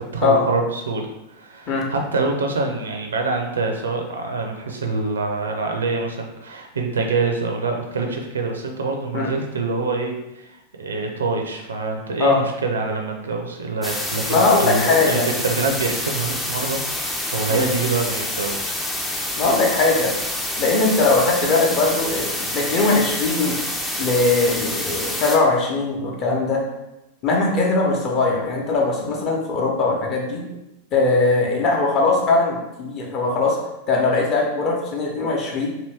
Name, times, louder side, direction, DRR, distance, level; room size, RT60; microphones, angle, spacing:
voice 1, 0.0-18.7, right 3 dB, 70° right, 3 dB, 0.5 m, -25 dB
sound 1, 13.8-25.4, left 1 dB, 10° left, 0.4 m, -27 dB
voice 2, 14.3-15.3 17.5-17.7 19.4-20.1 20.6-23.6 24.0-26.6 27.2-30.4 30.9-33.6 33.9-35.7, left 3 dB, 35° left, -1 dB, 0.8 m, -20 dB
2.8 x 2.7 x 3.3 m, 0.94 s
figure-of-eight pair, 90°, 0 cm